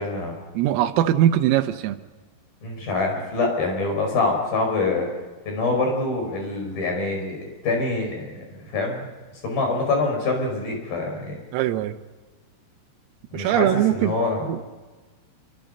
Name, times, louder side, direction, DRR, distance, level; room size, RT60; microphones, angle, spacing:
voice 1, 0.0-0.4 2.6-5.1 5.5-9.1 9.4-11.4 13.3-14.5, left 3 dB, 45° left, 2 dB, 6.5 m, -25 dB
voice 2, 0.6-2.0 11.5-12.0 13.3-14.1 14.5-14.6, right 12 dB, 80° right, 7 dB, 3.7 m, -21 dB
27.0 x 25.0 x 5.5 m, 1.3 s
omnidirectional pair, 6.0 m